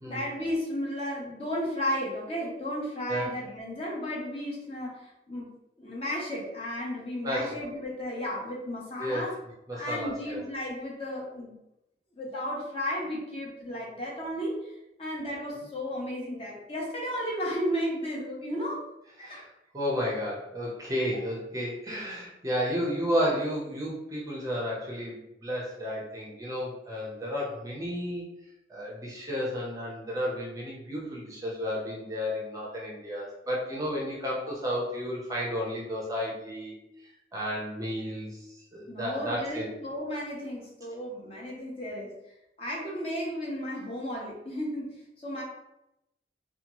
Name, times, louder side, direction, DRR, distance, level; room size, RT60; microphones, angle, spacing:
voice 1, 0.1-5.5 5.8-9.4 9.7-11.6 12.2-18.8 19.2-19.4 21.1-21.2 38.9-42.1 42.6-45.4, equal, 35° left, -3 dB, 0.6 m, -34 dB
voice 2, 7.2-7.6 9.0-9.3 9.7-10.4 19.2-19.5 19.7-28.3 28.7-36.8 37.3-39.7, equal, 20° right, -3 dB, 0.5 m, -32 dB
2.7 x 2.2 x 2.9 m, 0.89 s
head